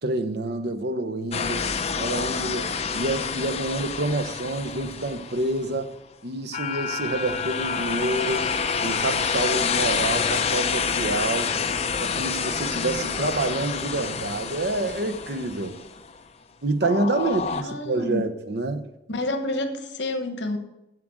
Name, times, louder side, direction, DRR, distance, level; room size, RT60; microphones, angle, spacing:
voice 1, 0.0-5.9 6.2-11.6 12.0-15.8 16.6-18.9, right 2 dB, 60° right, 0.9 m, -28 dB
sound 1, 1.3-5.7 6.5-16.2 16.8-17.6, left 6 dB, 35° left, 0.6 m, -28 dB
voice 2, 17.2-18.2 19.1-20.6, left 2 dB, 75° left, 1.3 m, -29 dB
7.6 x 7.6 x 7.7 m
head